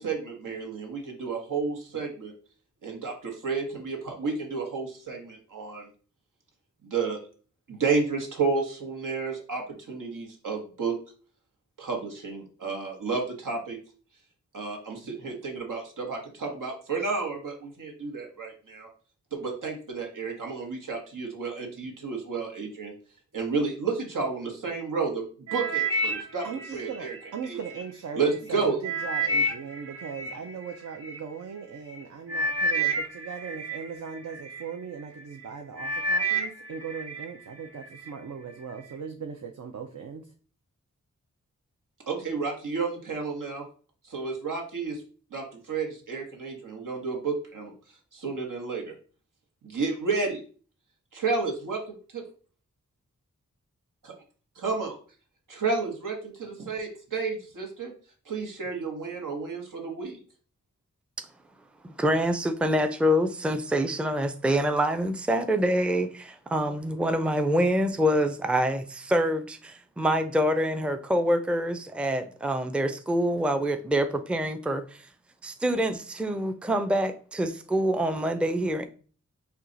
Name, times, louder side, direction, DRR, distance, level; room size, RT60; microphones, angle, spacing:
voice 1, 0.0-2.3 2.8-5.9 6.8-7.2 7.7-10.9 11.8-13.8 14.5-18.9 19.3-22.9 23.3-25.2 25.5-26.5 26.7-27.1 27.5-27.6 28.1-28.8 42.1-43.7 44.0-45.0 45.3-47.7 48.1-48.9 49.6-50.4 51.1-51.8 54.0-54.1 54.6-55.0 55.5-57.9 58.2-60.2, right 4 dB, 85° right, 1.2 m, -31 dB
sound 1, 25.5-27.8 28.3-31.2 31.9-32.0 32.3-34.7 35.2-35.5 35.8-37.3 37.7-38.1 38.7-38.8, right 1 dB, 50° right, 1.2 m, -30 dB
voice 2, 26.4-40.3, right 6 dB, 65° right, 0.6 m, -39 dB
voice 3, 61.8-75.0 75.4-78.9, equal, 5° right, 0.4 m, -26 dB
4.4 x 2.4 x 3.8 m
cardioid pair, 60°, 31 cm